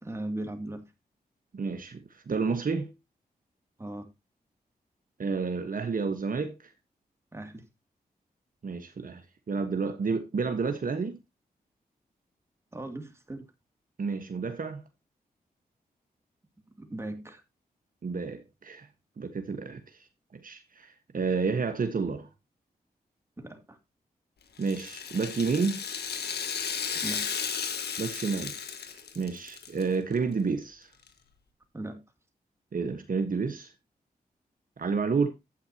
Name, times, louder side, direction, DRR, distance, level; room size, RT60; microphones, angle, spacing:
voice 1, 0.0-0.9 3.8-4.1 7.3-7.7 12.7-13.5 16.7-17.4 23.4-23.8 26.9-27.3 31.7-32.0, right 1 dB, 15° right, 2.5 m, -38 dB
voice 2, 1.6-2.9 5.2-6.6 8.6-9.2 9.5-11.2 14.0-14.8 18.0-18.9 19.2-20.0 20.3-22.3 24.6-25.8 28.0-28.5 28.8-30.9 32.7-33.7 34.8-35.3, right 5 dB, 60° right, 1.3 m, -30 dB
Rattle (instrument), 24.6-29.8 30.1-30.2 31.1-31.2, left 7 dB, 85° left, 1.6 m, -34 dB
11.5 x 8.7 x 2.9 m
cardioid pair, 55°, 16 cm